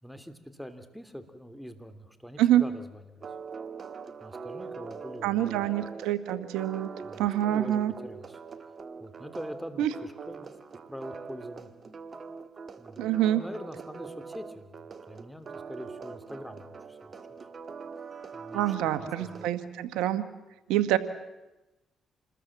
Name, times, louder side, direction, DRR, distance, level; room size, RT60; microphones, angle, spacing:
voice 1, 0.0-3.3 4.2-5.6 7.0-8.4 9.0-10.5 10.9-11.7 12.8-13.1 13.3-17.2 18.3-19.5, equal, ahead, 8 dB, 3.1 m, -44 dB
sound 1, 3.2-19.5, right 5 dB, 45° right, 1.9 m, -43 dB
voice 2, 5.2-6.9 7.2-7.9 9.8-9.9 13.0-13.4 18.5-20.2 20.7-21.0, right 12 dB, 85° right, 12 dB, 1.3 m, -26 dB
28.0 x 21.0 x 7.5 m, 1.0 s
supercardioid pair, 65°, 0 cm